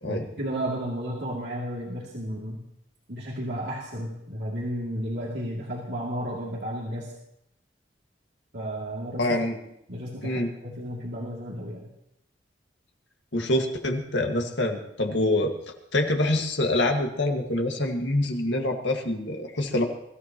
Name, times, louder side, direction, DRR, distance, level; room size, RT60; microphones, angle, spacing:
voice 1, 0.0-2.6 3.1-7.1 8.5-9.3 9.9-11.8, equal, 65° right, -4 dB, 2.7 m, -33 dB
voice 2, 9.2-9.6 10.2-10.5 13.3-15.5 15.9-19.8, left 1 dB, 80° left, 3 dB, 1.9 m, -25 dB
23.0 x 14.0 x 3.0 m, 0.79 s
head